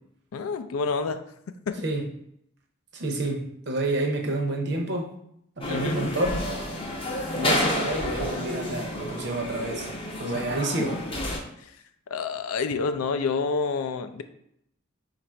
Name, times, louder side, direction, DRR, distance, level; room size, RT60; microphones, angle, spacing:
voice 1, 0.3-1.2 1.7-1.8 5.7-6.1 10.3-10.4 12.1-14.2, left 4 dB, 85° left, 10 dB, 0.4 m, -28 dB
voice 2, 2.9-5.1 5.6-6.5 7.3-9.9 10.2-11.0, right 2 dB, 50° right, 2 dB, 0.6 m, -29 dB
sound 1, 5.6-11.4, left 1 dB, 25° left, 0.5 m, -30 dB
3.9 x 2.5 x 4.3 m, 0.74 s
head